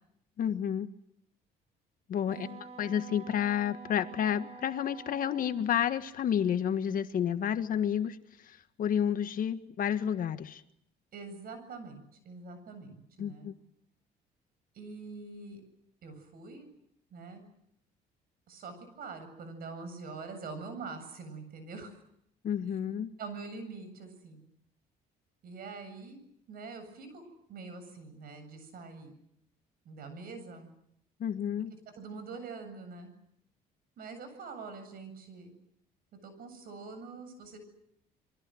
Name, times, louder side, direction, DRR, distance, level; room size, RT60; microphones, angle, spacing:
voice 1, 0.4-0.9 2.1-2.5 2.8-8.2 8.5-10.6 13.2-13.5 22.4-23.1 31.2-31.7, left 9 dB, 55° left, 10 dB, 1.6 m, -30 dB
Wind instrument woodwind instrument, 2.3-5.7, right 4 dB, 35° right, 2.8 m, -48 dB
voice 2, 11.1-13.5 14.7-15.6 16.0-16.7 17.1-17.5 18.5-21.9 23.2-24.4 25.4-26.2 26.5-29.2 29.8-30.7 31.7-33.1 34.0-35.5 36.2-37.6, right 4 dB, 60° right, 10 dB, 7.8 m, -44 dB
27.5 x 23.5 x 7.9 m, 0.74 s
cardioid pair, 110°, 17 cm